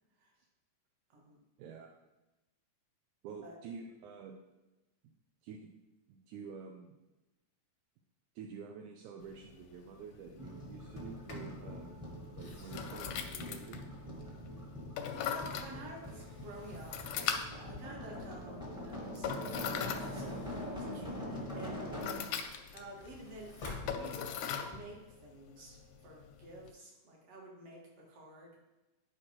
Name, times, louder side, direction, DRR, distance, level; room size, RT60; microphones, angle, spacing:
voice 1, 1.6-1.9 3.2-4.4 5.4-5.7 6.1-7.0 8.4-11.9 12.4-13.8, right 6 dB, 80° right, 2 dB, 2.0 m, -48 dB
sound 1, 9.2-26.7, left 7 dB, 85° left, 2.0 m, -42 dB
sound 2, 10.4-22.4 23.8-24.5 24.7-24.8, left 1 dB, 5° right, 0.4 m, -44 dB
Sliding door, 10.8-11.6 12.2-14.6 15.1-17.3 19.7-21.6 22.1-24.6, left 3 dB, 60° left, 0.7 m, -52 dB
voice 2, 15.1-17.3 17.6-21.9 22.7-23.6 23.9-24.3 24.6-28.6, right 1 dB, 55° right, -3 dB, 2.6 m, -51 dB
10.5 x 5.0 x 2.9 m, 1.0 s
omnidirectional pair, 3.5 m